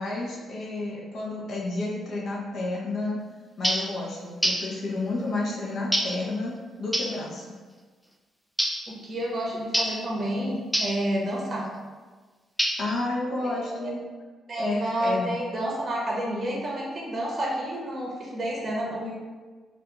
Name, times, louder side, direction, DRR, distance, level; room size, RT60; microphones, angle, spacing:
voice 1, 0.0-3.2 3.6-6.5 6.8-7.4 12.8-14.0 14.6-15.3, left 2 dB, 60° left, -3 dB, 0.6 m, -30 dB
sound 1, 3.6-3.9 4.4-4.7 5.9-6.2 6.9-7.2 8.6-8.9 9.7-10.0 10.7-11.0 12.6-13.0, equal, ahead, 0.3 m, -26 dB
voice 2, 8.9-11.7 13.8-13.9 14.5-19.1, right 1 dB, 45° right, -3 dB, 0.7 m, -29 dB
2.4 x 2.3 x 2.8 m, 1.4 s
supercardioid pair, 60°, 0 cm